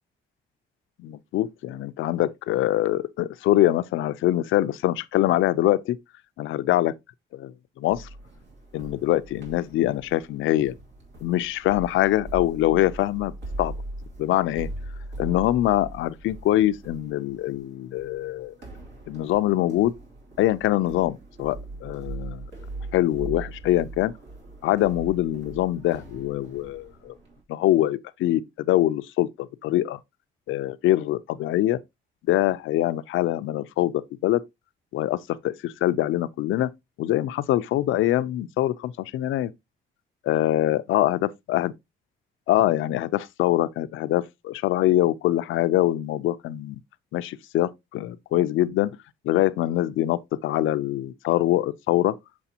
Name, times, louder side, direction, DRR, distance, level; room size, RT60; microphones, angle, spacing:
voice 1, 1.0-6.0 6.4-6.9 7.3-8.1 8.7-10.7 11.2-13.3 13.6-13.7 14.2-14.7 15.2-18.5 19.1-19.9 20.4-22.4 22.9-24.1 24.6-27.1 27.5-30.0 30.5-31.8 32.3-34.4 34.9-35.2 35.4-36.7 37.0-39.5 40.3-41.7 42.5-46.8 47.1-49.0 49.2-52.1, left 14 dB, 80° left, 0.5 m, -24 dB
sound 1, 7.9-27.4, right 2 dB, 65° right, 2.9 m, -40 dB
7.0 x 4.8 x 2.8 m
cardioid pair, 90°, 20 cm